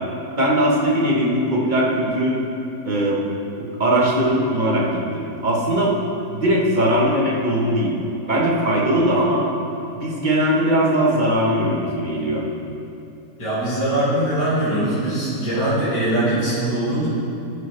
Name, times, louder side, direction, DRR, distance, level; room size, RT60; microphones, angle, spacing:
voice 1, 0.3-2.4 2.8-3.2 3.6-6.0 6.3-7.9 8.3-9.4 9.9-12.4, right 1 dB, 30° right, -4 dB, 1.2 m, -20 dB
voice 2, 13.4-17.1, right 1 dB, 70° left, -12 dB, 3.0 m, -21 dB
12.5 x 6.7 x 3.3 m, 2.7 s
omnidirectional pair, 1.9 m